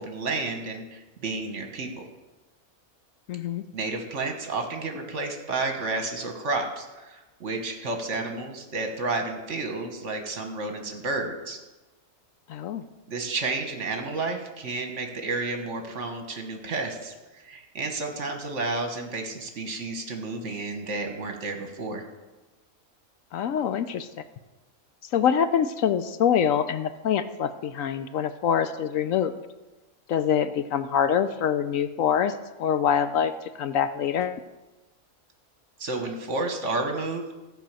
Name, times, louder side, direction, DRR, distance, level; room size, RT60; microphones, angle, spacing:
voice 1, 0.0-2.1 3.7-11.6 13.1-22.0 35.8-37.2, right 3 dB, 55° right, 4 dB, 1.6 m, -31 dB
voice 2, 3.3-3.6 12.5-12.8 23.3-24.1 25.1-29.3 30.1-32.3 32.6-34.4, left 8 dB, 70° left, 11 dB, 0.9 m, -25 dB
14.0 x 5.5 x 7.4 m, 1.1 s
omnidirectional pair, 1.5 m